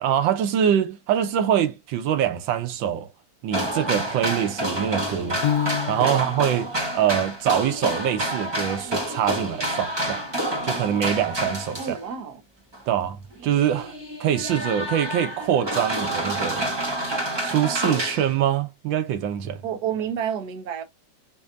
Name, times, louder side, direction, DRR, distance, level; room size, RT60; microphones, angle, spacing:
voice 1, 0.0-3.1 3.4-5.4 5.9-10.3 10.6-12.0 12.9-16.7 17.4-19.6, right 9 dB, 90° right, 1.5 m, -24 dB
sound 1, 3.5-12.1 12.7-12.8 13.4-18.4, right 1 dB, 20° right, 0.8 m, -28 dB
Piano, 5.4-6.4, left 10 dB, 70° left, 0.9 m, -26 dB
voice 2, 11.8-12.4 19.6-20.8, right 8 dB, 60° right, 1.5 m, -29 dB
6.9 x 2.7 x 2.5 m
omnidirectional pair, 2.0 m